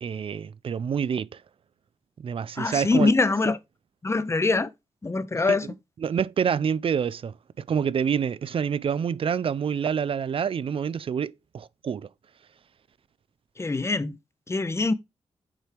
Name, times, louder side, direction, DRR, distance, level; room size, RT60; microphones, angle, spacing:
voice 1, 0.0-1.4 2.2-3.1 5.5-5.6 6.0-12.1, right 7 dB, 55° right, 0.4 m, -27 dB
voice 2, 2.6-3.6 4.0-4.7 5.0-5.7 13.6-14.2 14.5-14.9, left 3 dB, 25° left, 0.6 m, -23 dB
7.3 x 4.6 x 3.3 m
cardioid pair, 70°, 11 cm